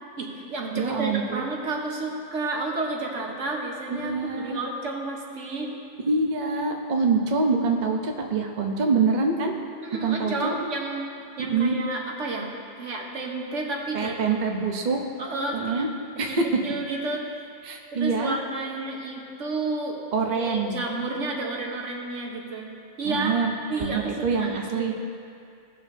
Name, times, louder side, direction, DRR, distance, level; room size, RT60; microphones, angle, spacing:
voice 1, 0.2-5.7 9.8-11.0 11.4-12.5 12.8-14.2 15.2-15.9 16.3-16.4 16.6-17.2 17.9-20.0 20.3-22.7 23.0-23.3 23.7-24.9, right 2 dB, 85° right, 0 dB, 1.4 m, -31 dB
voice 2, 0.8-1.4 3.9-4.6 6.1-9.5 10.0-10.5 11.4-11.8 13.9-15.0 15.5-15.9 16.2-16.5 17.6-18.4 20.1-20.8 23.0-23.5 23.8-24.9, right 4 dB, 45° right, 2 dB, 0.8 m, -25 dB
17.0 x 6.3 x 2.7 m, 2.4 s
omnidirectional pair, 1.2 m